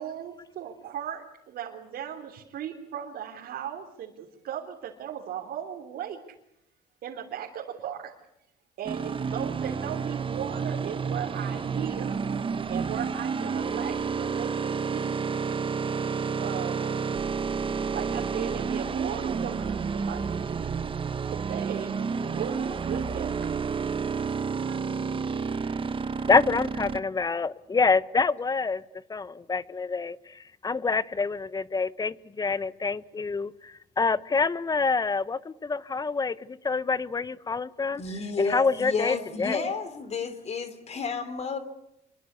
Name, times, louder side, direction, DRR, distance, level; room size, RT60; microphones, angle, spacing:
voice 1, 0.0-6.2 7.0-8.1 8.8-12.2 12.7-15.2 16.4-17.0 17.8-20.9 21.2-23.6 24.5-24.8, right 9 dB, 65° right, 3.5 m, -37 dB
sound 1, 8.8-27.0, right 5 dB, 30° right, 1.2 m, -30 dB
voice 2, 26.2-28.8 29.1-38.0 38.4-39.6, left 4 dB, 20° left, 1.0 m, -27 dB
voice 3, 38.0-41.6, left 4 dB, 40° left, 3.3 m, -31 dB
27.0 x 23.0 x 8.3 m
cardioid pair, 110°, 17 cm